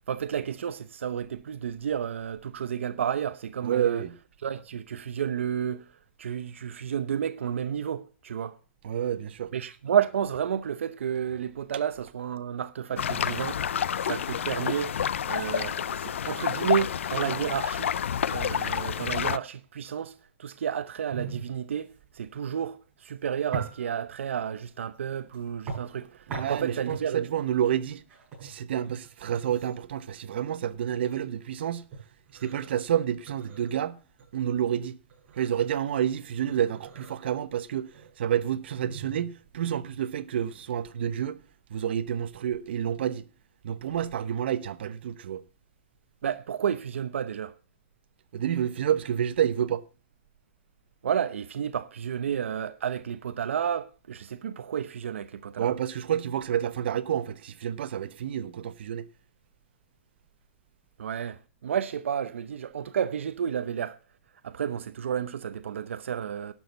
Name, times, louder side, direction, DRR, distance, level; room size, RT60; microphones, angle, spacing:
voice 1, 0.1-4.0 4.4-5.8 6.2-8.6 9.5-13.6 14.1-14.9 15.2-17.9 18.3-20.1 20.4-21.9 22.1-26.1 26.4-27.3 46.2-47.5 51.0-55.7 61.0-64.0 64.4-66.5, right 8 dB, 85° right, 0.8 m, -31 dB
voice 2, 3.6-4.1 8.8-9.5 26.3-28.0 28.4-31.9 32.4-34.0 34.3-35.0 35.3-37.9 38.2-41.4 41.7-43.2 43.6-45.4 48.3-49.8 55.6-59.0, right 10 dB, 60° right, 1.0 m, -29 dB
sound 1, 13.0-19.4, left 8 dB, 85° left, 0.6 m, -29 dB
sound 2, 21.1-40.6, right 5 dB, 20° right, 6.2 m, -42 dB
12.0 x 6.2 x 7.1 m
hypercardioid pair, 165°, 7 cm